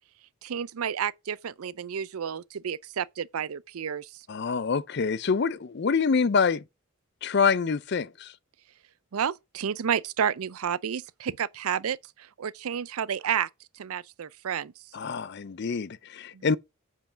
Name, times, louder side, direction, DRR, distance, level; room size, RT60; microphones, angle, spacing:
voice 1, 0.4-4.1 9.1-13.5 13.7-14.7 16.3-16.5, right 8 dB, 85° right, 0.5 m, -31 dB
voice 2, 4.3-6.6 7.2-8.3 14.9-16.6, left 5 dB, 50° left, 0.4 m, -26 dB
7.8 x 4.6 x 5.7 m
head